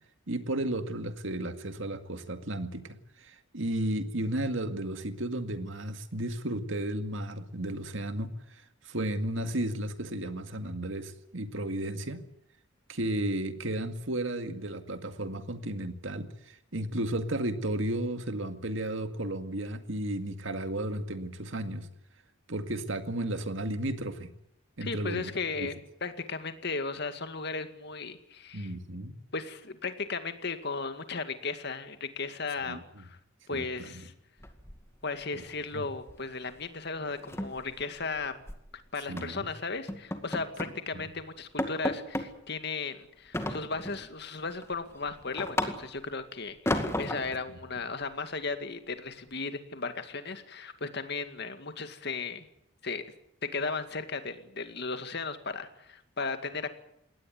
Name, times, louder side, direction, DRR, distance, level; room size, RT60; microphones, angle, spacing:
voice 1, 0.3-12.2 12.9-21.9 22.5-24.3 24.8-25.3 25.6-25.7 28.5-29.1 32.7-33.0 33.5-34.0 35.3-35.4 35.7-35.9 39.1-39.5 40.9-41.1, right 1 dB, 70° right, 8 dB, 2.1 m, -34 dB
voice 2, 24.8-25.8 26.0-28.7 29.3-33.2 33.5-34.1 35.0-38.4 38.9-52.5 52.8-53.0 53.5-56.7, left 4 dB, 55° left, 9 dB, 2.1 m, -36 dB
sound 1, 34.4-35.2 35.5-35.8 36.1-36.3 36.6-36.7 37.1-38.6 39.2-39.4 39.9-40.8 41.2-41.3 41.6-42.3 43.3-44.1 44.5-46.1 46.7-47.4, left 1 dB, 15° left, 2.1 m, -34 dB
21.5 x 18.0 x 9.5 m, 0.75 s
head